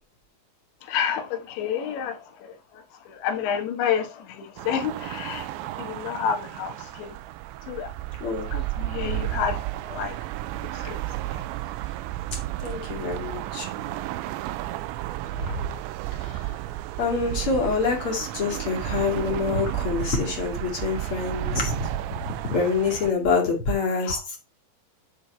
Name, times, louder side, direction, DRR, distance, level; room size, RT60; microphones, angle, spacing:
voice 1, 0.8-5.5 5.8-7.2 7.7-7.9 8.5-10.2 10.7-11.0 11.3-11.4 15.4-15.6 24.0-24.2, left 8 dB, 80° left, 3.6 m, -30 dB
sound 1, 4.6-23.1, right 15 dB, 85° right, 2.8 m, -32 dB
voice 2, 12.3-13.7 15.4-15.6 16.1-16.5 17.0-21.9 22.5-24.4, left 4 dB, 40° left, 2.1 m, -26 dB
10.5 x 4.2 x 4.3 m
omnidirectional pair, 5.1 m